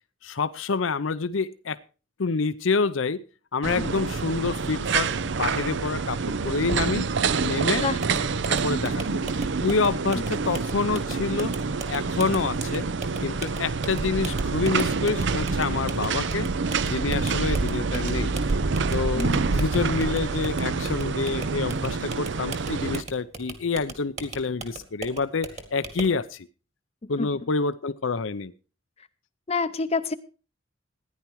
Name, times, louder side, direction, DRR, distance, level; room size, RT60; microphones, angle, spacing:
voice 1, 0.2-1.8 2.2-3.2 3.5-7.1 7.4-7.9 8.5-9.3 9.6-11.5 11.9-12.9 13.2-16.5 16.8-18.3 18.9-26.5 27.1-28.5, left 4 dB, 85° left, 13 dB, 0.7 m, -27 dB
sound 1, 3.6-23.0, right 4 dB, 65° right, 0.6 m, -27 dB
sound 2, 8.0-26.2, right 3 dB, 35° right, 2.2 m, -40 dB
voice 2, 19.2-19.5 27.0-27.3 29.5-30.1, left 4 dB, 35° left, 10 dB, 0.6 m, -28 dB
15.0 x 10.5 x 4.7 m, 0.35 s
head